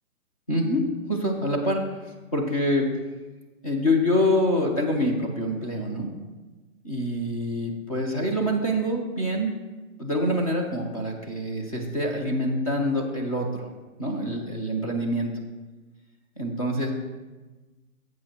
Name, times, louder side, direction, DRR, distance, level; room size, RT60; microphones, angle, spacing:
voice 1, 0.5-0.8 1.1-1.8 2.3-2.9 3.6-6.1 6.8-9.5 10.0-13.7 14.0-15.3 16.4-16.9, left 1 dB, 25° left, 1 dB, 0.8 m, -25 dB
10.5 x 7.6 x 3.0 m, 1.2 s
hypercardioid pair, 180°, 42 cm